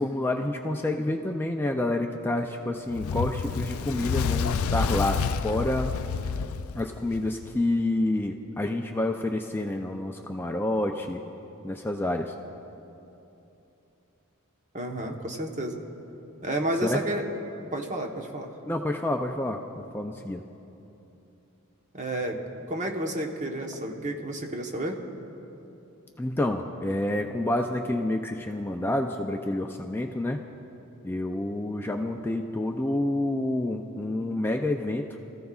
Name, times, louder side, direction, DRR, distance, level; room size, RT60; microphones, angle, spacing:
voice 1, 0.0-6.0 6.7-11.2 11.6-12.3 16.8-17.0 18.7-20.4 26.2-30.4 31.0-35.1, left 1 dB, 10° left, 3 dB, 0.4 m, -28 dB
Fire, 2.9-7.5, left 6 dB, 70° left, 0.4 m, -29 dB
voice 2, 14.7-15.8 16.4-17.2 17.7-18.5 21.9-22.4 22.7-25.0, right 1 dB, 35° right, 2 dB, 1.1 m, -31 dB
25.0 x 14.5 x 2.4 m, 3.0 s
head